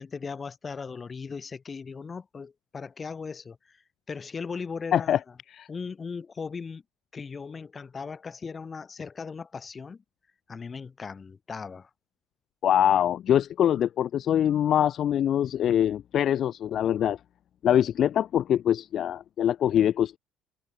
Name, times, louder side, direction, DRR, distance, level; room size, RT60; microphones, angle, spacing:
voice 1, 0.0-3.8 4.1-5.3 5.7-6.8 7.1-10.0 10.5-11.9, left 5 dB, 35° left, 3.5 m, -38 dB
voice 2, 12.6-17.2 17.6-20.2, left 10 dB, 55° left, 0.9 m, -23 dB
supercardioid pair, 75°, 0 cm